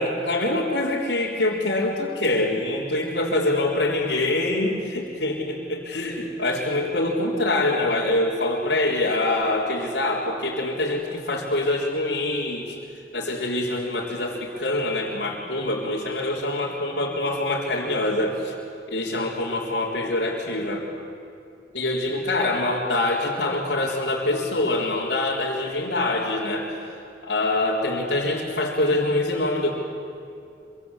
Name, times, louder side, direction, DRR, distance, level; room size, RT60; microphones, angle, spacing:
voice 1, 0.0-12.8 13.1-18.5 18.9-20.8 21.7-26.7 27.2-29.7, left 2 dB, 90° left, -7 dB, 4.0 m, -25 dB
26.0 x 25.0 x 8.3 m, 2.6 s
head